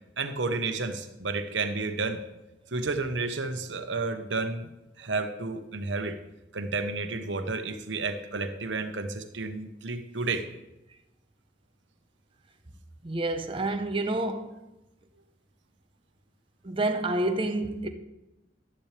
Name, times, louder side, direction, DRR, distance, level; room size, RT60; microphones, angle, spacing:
voice 1, 0.2-2.2 2.7-4.7 5.0-6.2 6.5-10.5, right 3 dB, 75° right, 1.0 m, -31 dB
voice 2, 13.0-14.6 16.6-17.9, right 2 dB, 30° right, 0.8 m, -28 dB
12.5 x 10.0 x 3.4 m
head